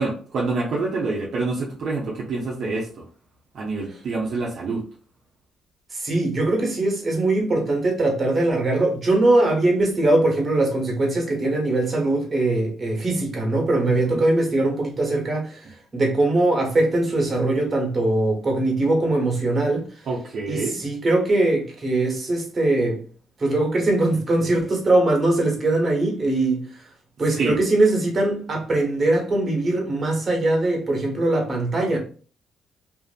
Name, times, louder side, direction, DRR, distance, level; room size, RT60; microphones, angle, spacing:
voice 1, 0.0-3.1 3.5-4.8 13.8-14.3 20.1-20.8 27.3-27.6, right 3 dB, 65° right, 0.6 m, -27 dB
voice 2, 5.9-20.1 20.5-23.0 23.4-26.9 27.2-32.0, right 2 dB, 35° right, 1.2 m, -21 dB
2.6 x 2.4 x 2.3 m
cardioid pair, 90°, 0 cm